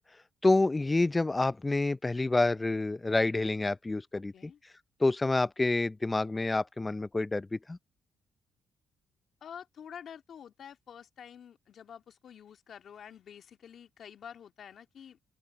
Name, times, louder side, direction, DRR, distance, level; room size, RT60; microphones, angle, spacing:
voice 1, 0.4-4.5 5.0-7.8, left 2 dB, 20° left, 0.5 m, -28 dB
voice 2, 4.1-4.6 9.4-15.2, left 8 dB, 60° left, 2.0 m, -48 dB
open air
cardioid pair, 90°, 0 cm